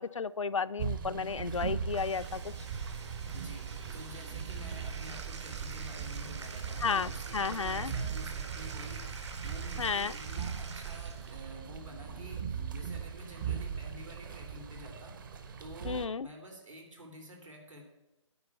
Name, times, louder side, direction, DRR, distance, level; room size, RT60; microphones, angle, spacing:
voice 1, 0.0-2.5 6.8-7.9 9.8-10.1 15.8-16.3, left 5 dB, 75° left, 14 dB, 0.4 m, -33 dB
sound 1, 0.8-16.1, right 7 dB, 40° right, 0.9 m, -39 dB
Bathtub (filling or washing), 1.5-11.5, right 4 dB, 60° right, 1.5 m, -47 dB
sound 2, 1.8-12.9, right 6 dB, 15° right, 0.4 m, -52 dB
voice 2, 3.3-15.2 15.6-17.9, equal, 80° right, 0 dB, 3.2 m, -49 dB
10.0 x 4.9 x 8.1 m, 0.97 s
figure-of-eight pair, 135°, 16 cm